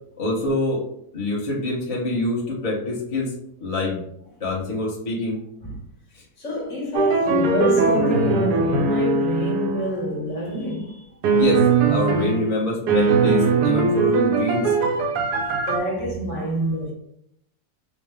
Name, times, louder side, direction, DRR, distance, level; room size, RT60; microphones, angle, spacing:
voice 1, 0.2-0.8 1.1-3.3 3.6-4.0 4.4-5.4 11.3-14.7, left 2 dB, 30° left, 0.8 m, -25 dB
voice 2, 6.4-11.0 15.5-16.9, equal, 55° left, 1.3 m, -26 dB
sound 1, 6.9-9.9 11.2-12.5 12.9-15.8, right 4 dB, 85° right, 1.2 m, -20 dB
5.4 x 2.1 x 3.3 m
omnidirectional pair, 1.7 m